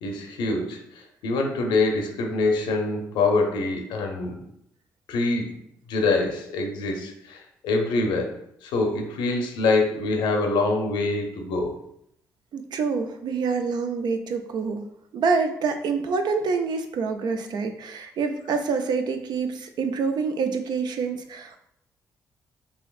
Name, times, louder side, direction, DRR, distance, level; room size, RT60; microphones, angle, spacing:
voice 1, 0.0-4.4 5.1-5.5 5.9-11.8, left 3 dB, 75° left, 3 dB, 0.6 m, -25 dB
voice 2, 12.5-14.8 15.1-21.6, right 5 dB, 60° right, 7 dB, 0.5 m, -26 dB
4.0 x 2.8 x 2.4 m, 0.75 s
hypercardioid pair, 45°, 8 cm